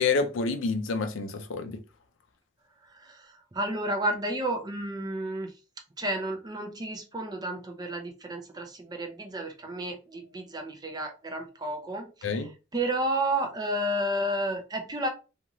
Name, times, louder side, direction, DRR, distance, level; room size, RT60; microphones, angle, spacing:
voice 1, 0.0-1.8 12.2-12.5, left 4 dB, 90° left, 0.5 m, -28 dB
voice 2, 2.9-5.5 6.0-15.1, right 1 dB, 20° right, 0.5 m, -31 dB
2.6 x 2.4 x 2.9 m
head